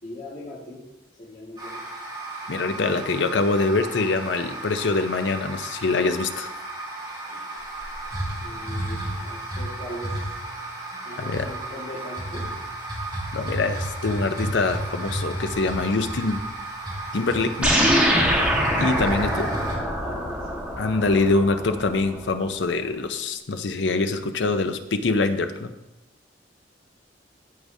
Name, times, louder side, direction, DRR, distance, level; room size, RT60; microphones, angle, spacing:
voice 1, 0.0-0.8 1.2-1.8 8.4-10.3 11.1-12.5 18.9-20.6, left 1 dB, 45° left, -9 dB, 1.8 m, -39 dB
sound 1, 1.6-19.7, right 1 dB, 25° right, 2.1 m, -33 dB
voice 2, 2.5-6.5 11.2-11.4 13.3-16.4 17.1-17.7 18.8-19.5 20.8-25.7, left 3 dB, 75° left, 8 dB, 0.6 m, -24 dB
sound 2, 17.6-22.3, equal, 5° right, 1.5 m, -24 dB
14.0 x 4.8 x 2.7 m, 0.94 s
head